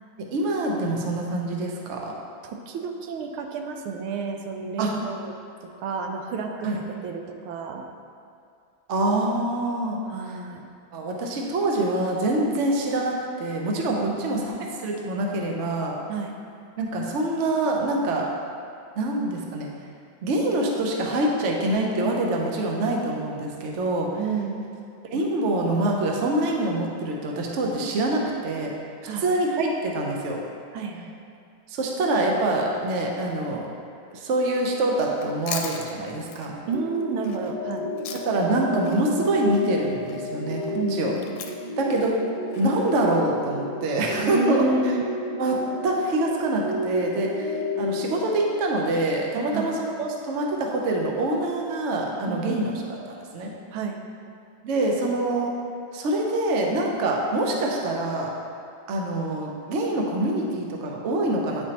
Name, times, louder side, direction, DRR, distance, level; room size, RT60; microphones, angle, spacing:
voice 1, 0.3-2.1 4.8-4.9 6.6-6.8 8.9-10.0 10.9-14.5 14.8-16.0 16.8-18.3 18.9-19.7 20.2-24.1 25.1-28.7 29.2-30.4 31.7-33.7 34.1-36.5 38.1-41.1 41.8-42.1 42.6-44.7 45.4-53.5 54.6-55.5 55.9-58.3 58.9-61.7, right 1 dB, 75° right, 0 dB, 0.6 m, -25 dB
voice 2, 2.4-5.3 5.6-7.8 10.1-10.7 14.0-14.7 16.1-16.3 24.2-24.7 29.1-29.3 30.7-31.1 36.6-37.9 40.7-41.3 44.2-45.0 49.5-49.7 52.3-52.6 53.7-54.0, right 4 dB, 90° right, 3 dB, 1.5 m, -30 dB
Chewing mastication, 35.1-38.6 38.8-43.2, left 6 dB, 75° left, 1.2 m, -39 dB
sound 1, 36.7-48.6, left 2 dB, 30° right, 0.7 m, -32 dB
9.4 x 4.5 x 2.9 m, 2.4 s
omnidirectional pair, 2.3 m